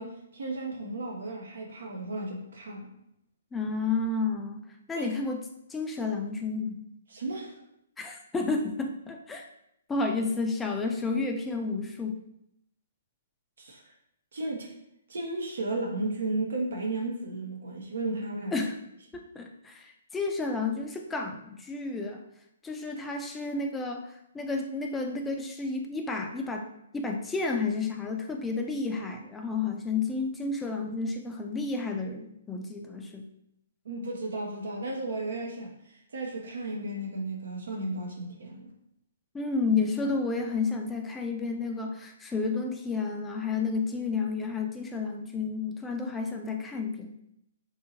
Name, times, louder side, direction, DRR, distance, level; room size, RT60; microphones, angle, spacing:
voice 1, 0.0-2.9 5.0-5.1 7.1-7.6 13.6-13.8 14.3-14.7 15.1-18.7 33.8-38.7, right 2 dB, 75° right, 0 dB, 0.5 m, -34 dB
voice 2, 3.5-5.4 5.7-6.8 8.0-9.5 9.9-12.2 18.5-18.8 19.1-22.2 22.6-24.0 24.3-26.7 26.9-33.3 39.3-47.2, left 4 dB, 10° left, 2 dB, 0.3 m, -31 dB
2.7 x 2.7 x 2.6 m, 0.78 s
hypercardioid pair, 135°, 0 cm